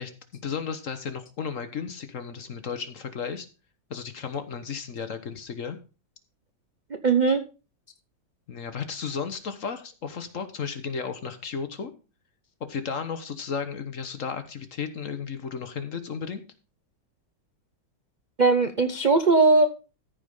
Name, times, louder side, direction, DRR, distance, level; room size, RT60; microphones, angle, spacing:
voice 1, 0.0-3.5 3.9-5.8 8.5-11.9 12.6-16.4, left 6 dB, 50° left, 9 dB, 1.3 m, -34 dB
voice 2, 7.0-7.4 18.4-19.7, right 3 dB, 50° right, 8 dB, 0.5 m, -19 dB
14.0 x 5.0 x 5.4 m, 0.33 s
omnidirectional pair, 2.0 m